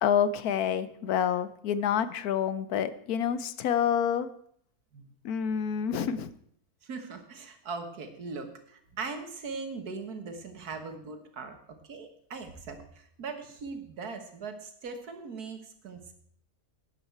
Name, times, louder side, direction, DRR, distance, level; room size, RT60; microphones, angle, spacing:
voice 1, 0.0-4.3 5.2-6.3, left 8 dB, 80° left, 14 dB, 1.2 m, -28 dB
voice 2, 6.8-11.6 11.9-16.1, right 4 dB, 80° right, 7 dB, 1.9 m, -40 dB
12.0 x 9.9 x 4.6 m, 0.66 s
omnidirectional pair, 1.6 m